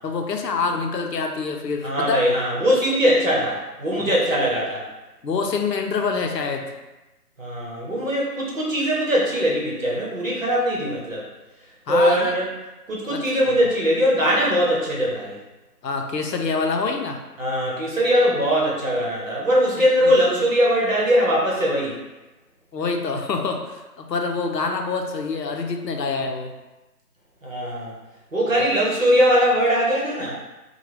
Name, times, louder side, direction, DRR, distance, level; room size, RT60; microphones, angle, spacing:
voice 1, 0.0-2.2 4.0-4.2 5.2-6.7 11.9-12.3 13.1-13.6 15.8-17.2 20.0-20.1 22.7-26.5, left 4 dB, 80° left, 3 dB, 0.6 m, -26 dB
voice 2, 1.8-4.8 7.4-11.2 11.9-12.5 12.9-15.4 17.4-22.0 27.4-27.9 28.3-30.4, equal, 55° right, -4 dB, 0.9 m, -21 dB
2.9 x 2.2 x 3.0 m, 1.1 s
figure-of-eight pair, 180°, 49 cm